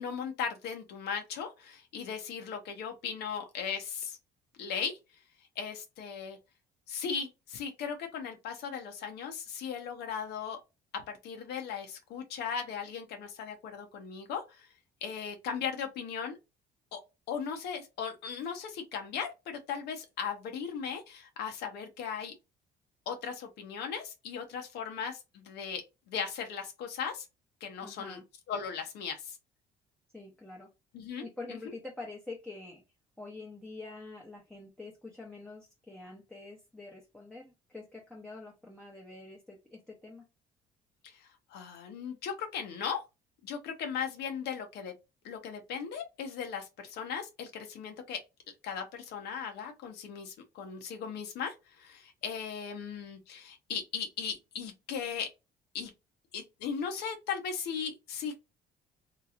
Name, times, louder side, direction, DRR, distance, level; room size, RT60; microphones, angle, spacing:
voice 1, 0.0-4.2 4.6-5.0 5.6-6.4 6.9-10.6 10.9-14.7 15.0-16.3 16.9-17.0 17.3-22.3 23.1-27.2 27.6-28.2 28.5-29.4 30.9-31.2 41.0-43.0 43.4-44.9 45.2-48.2 48.6-55.3 55.7-55.9 56.3-58.4, left 7 dB, 75° left, 0.8 m, -37 dB
voice 2, 27.8-28.2 30.1-30.7 31.2-32.8 33.2-40.2, left 3 dB, 5° left, 0.8 m, -46 dB
3.0 x 2.8 x 2.4 m
cardioid pair, 110°, 17 cm